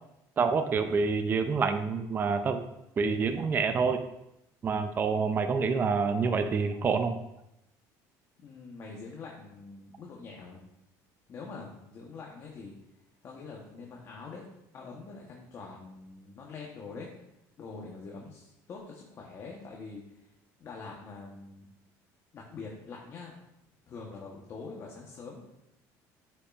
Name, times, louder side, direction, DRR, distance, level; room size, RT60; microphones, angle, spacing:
voice 1, 0.4-2.6 3.0-4.0 4.6-7.2, right 5 dB, 25° right, 8 dB, 0.4 m, -27 dB
voice 2, 8.4-10.7 11.3-12.7 13.2-14.5 14.7-17.1 17.6-20.0 20.6-21.7 22.3-23.3 23.9-25.4, left 4 dB, 40° left, -1 dB, 1.1 m, -44 dB
8.1 x 5.6 x 2.5 m, 0.86 s
cardioid pair, 130°, 8 cm